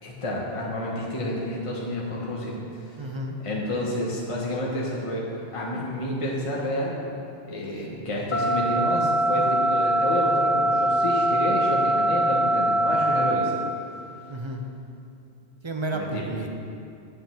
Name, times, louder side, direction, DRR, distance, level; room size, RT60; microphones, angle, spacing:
voice 1, 0.0-3.0 3.4-7.0 7.5-13.5 15.9-16.3, left 1 dB, 30° left, -4 dB, 1.2 m, -30 dB
voice 2, 3.0-3.3 8.8-9.5 14.3-14.6 15.6-16.5, right 2 dB, 30° right, 2 dB, 0.7 m, -32 dB
sound 1, 8.3-13.3, right 1 dB, 55° left, 0.6 m, -22 dB
8.4 x 5.2 x 7.4 m, 2.5 s
omnidirectional pair, 1.2 m